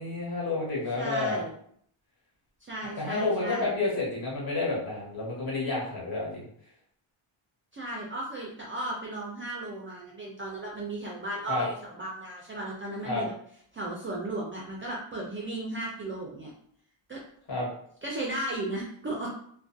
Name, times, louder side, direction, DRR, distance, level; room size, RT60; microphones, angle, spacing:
voice 1, 0.0-1.4 3.0-6.4 11.5-11.6 13.0-13.2 17.5-17.7, left 3 dB, 45° left, -5 dB, 1.2 m, -30 dB
voice 2, 0.9-1.5 2.6-3.7 7.7-13.3 13.7-16.5 17.1-17.2 18.0-19.3, right 1 dB, 30° right, -3 dB, 0.3 m, -35 dB
2.4 x 2.2 x 2.5 m, 0.63 s
cardioid pair, 125°, 50 cm